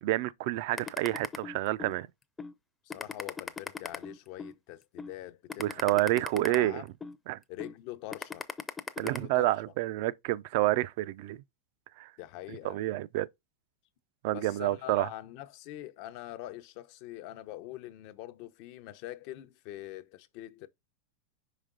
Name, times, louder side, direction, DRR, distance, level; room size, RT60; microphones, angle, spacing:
voice 1, 0.0-2.1 5.6-6.8 7.3-7.4 9.0-11.4 12.0-12.1 12.6-13.3 14.2-15.1, right 16 dB, 60° right, 0.5 m, -29 dB
sound 1, 0.8-1.9 2.4-2.5 2.9-4.5 5.0-5.1 5.5-7.2 7.6-7.7 8.1-9.2, left 4 dB, 10° left, 0.6 m, -38 dB
voice 2, 2.8-6.1 6.5-6.9 7.5-8.5 9.0-9.5 12.2-12.8 14.3-20.7, left 15 dB, 50° left, 0.7 m, -44 dB
5.3 x 5.0 x 3.8 m
supercardioid pair, 140°, 0 cm